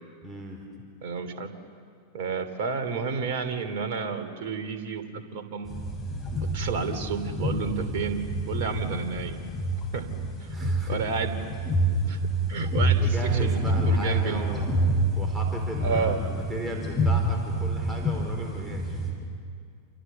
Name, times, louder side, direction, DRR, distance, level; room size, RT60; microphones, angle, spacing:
voice 1, 0.2-0.6 10.5-11.0 12.9-19.0, right 2 dB, 15° right, 1 dB, 4.7 m, -36 dB
voice 2, 1.0-1.5 2.1-5.7 6.5-9.4 9.9-10.1 10.4-11.4 11.8-12.2 12.5-14.5 15.8-16.2, right 5 dB, 50° right, 8 dB, 2.9 m, -31 dB
sound 1, 5.7-19.1, right 1 dB, 15° left, 6.8 m, -27 dB
28.5 x 28.5 x 7.2 m, 2.2 s
figure-of-eight pair, 90°, 0 cm